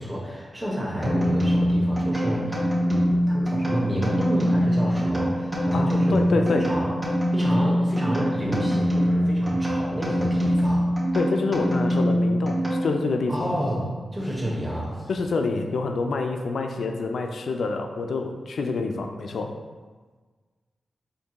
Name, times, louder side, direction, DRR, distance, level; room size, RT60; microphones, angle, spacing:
voice 1, 0.0-6.9 7.3-10.9 13.3-15.1, equal, 15° right, -5 dB, 1.0 m, -29 dB
sound 1, 1.0-13.2, equal, 35° right, 1.4 m, -24 dB
voice 2, 5.7-6.7 11.1-13.6 15.1-19.5, left 3 dB, 80° left, 5 dB, 0.3 m, -27 dB
4.3 x 2.6 x 3.0 m, 1.4 s
supercardioid pair, 40°, 0 cm